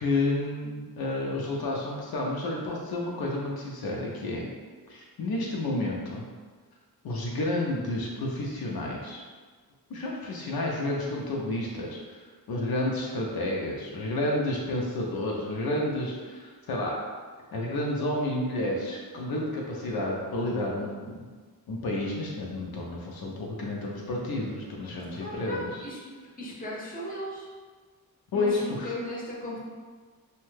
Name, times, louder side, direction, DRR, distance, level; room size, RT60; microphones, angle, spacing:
voice 1, 0.0-4.5 4.9-6.3 7.0-9.2 9.9-12.2 12.5-17.0 17.5-21.3 21.7-25.8 28.3-28.9, left 2 dB, 75° left, -2 dB, 0.6 m, -30 dB
voice 2, 25.2-26.0 26.4-27.5 28.3-29.6, left 1 dB, 25° left, -5 dB, 0.7 m, -36 dB
2.7 x 2.1 x 3.1 m, 1.5 s
wide cardioid pair, 100°, 37 cm